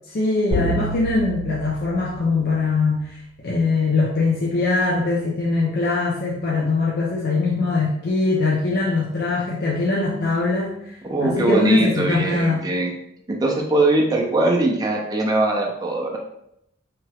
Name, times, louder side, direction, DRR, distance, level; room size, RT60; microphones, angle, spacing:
voice 1, 0.1-3.1 3.4-10.8 11.2-12.7, left 3 dB, 50° left, -4 dB, 0.5 m, -22 dB
sound 1, 0.5-3.0, right 1 dB, 80° left, 1.3 m, -29 dB
voice 2, 11.0-12.9 13.3-16.2, right 2 dB, 20° right, 0 dB, 0.5 m, -21 dB
3.2 x 2.9 x 2.3 m, 0.77 s
head